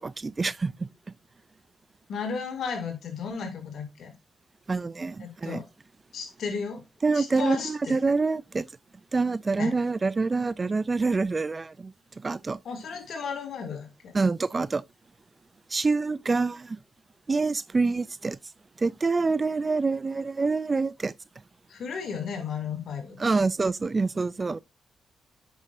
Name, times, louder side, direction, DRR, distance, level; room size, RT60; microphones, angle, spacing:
voice 1, 0.2-0.9 4.7-5.6 7.0-8.7 9.1-12.6 14.1-14.8 15.7-16.8 17.3-18.4 18.8-21.1 23.2-24.6, right 3 dB, 35° right, 0.4 m, -26 dB
voice 2, 2.1-4.1 5.2-5.7 6.1-6.8 7.1-8.0 9.6-9.8 12.6-14.1 21.7-23.5, left 6 dB, 70° left, 2.7 m, -34 dB
8.9 x 6.2 x 2.6 m
cardioid pair, 65°, 0 cm